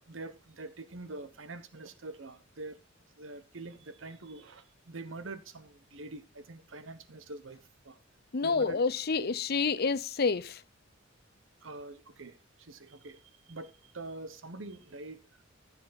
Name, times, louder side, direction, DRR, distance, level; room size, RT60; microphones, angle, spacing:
voice 1, 0.0-2.8 3.2-8.0 8.4-8.8 11.6-15.4, right 2 dB, 70° right, 1.1 m, -45 dB
voice 2, 8.3-10.6, left 4 dB, 50° left, 0.7 m, -28 dB
14.5 x 7.4 x 4.1 m
head